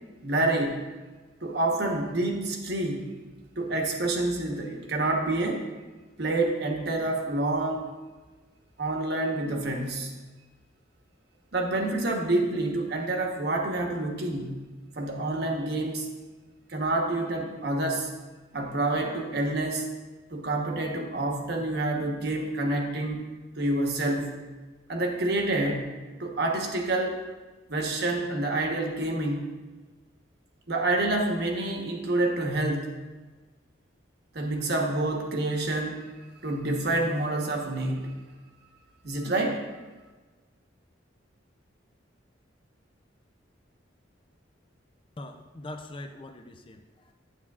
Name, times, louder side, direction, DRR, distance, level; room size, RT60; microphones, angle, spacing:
voice 1, 0.2-0.8 1.4-3.1 3.6-5.7 6.2-7.9 8.8-10.1 11.5-14.6 15.0-16.1 16.7-18.1 18.5-19.9 20.3-23.2 23.6-24.3 24.9-25.8 26.2-27.2 27.7-29.5 30.7-32.9 34.3-36.1 36.4-38.2 39.0-39.6, right 2 dB, 60° right, 1 dB, 1.1 m, -28 dB
voice 2, 45.2-47.1, left 1 dB, 30° left, 6 dB, 0.4 m, -42 dB
9.3 x 8.4 x 2.4 m, 1.3 s
head